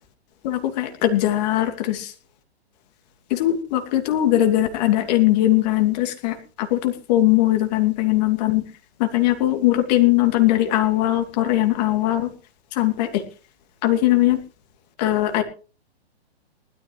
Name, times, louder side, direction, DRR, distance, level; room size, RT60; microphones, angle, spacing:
voice 1, 0.4-2.1 3.3-8.6 9.0-12.3 12.7-13.2 13.8-14.4 15.0-15.4, left 14 dB, 40° left, 5 dB, 2.8 m, -20 dB
19.5 x 13.5 x 3.2 m, 0.36 s
hypercardioid pair, 135°, 32 cm